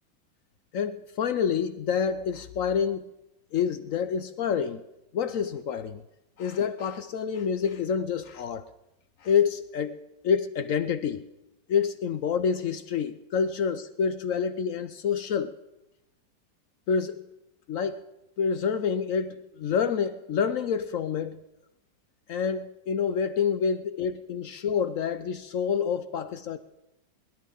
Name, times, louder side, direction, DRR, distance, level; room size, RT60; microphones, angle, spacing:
voice 1, 0.7-3.1 3.5-4.8 5.1-6.0 6.4-8.7 9.2-10.0 10.2-11.3 11.7-15.6 16.9-17.2 17.7-18.1 18.4-21.4 22.3-26.6, left 7 dB, 65° left, 11 dB, 0.8 m, -27 dB
20.5 x 10.5 x 5.4 m, 0.93 s
omnidirectional pair, 2.0 m